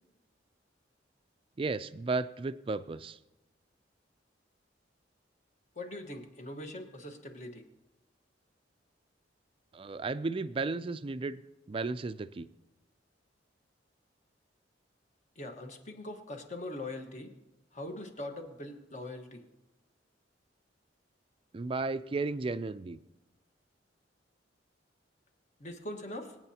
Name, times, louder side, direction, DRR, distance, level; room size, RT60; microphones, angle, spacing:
voice 1, 1.6-3.2 9.7-11.4 11.7-12.5 21.5-23.0, right 3 dB, 30° right, 14 dB, 0.4 m, -34 dB
voice 2, 5.7-7.6 15.3-17.3 17.7-19.4 25.6-26.4, left 1 dB, 40° left, 4 dB, 1.3 m, -42 dB
26.0 x 8.6 x 2.8 m, 1.0 s
head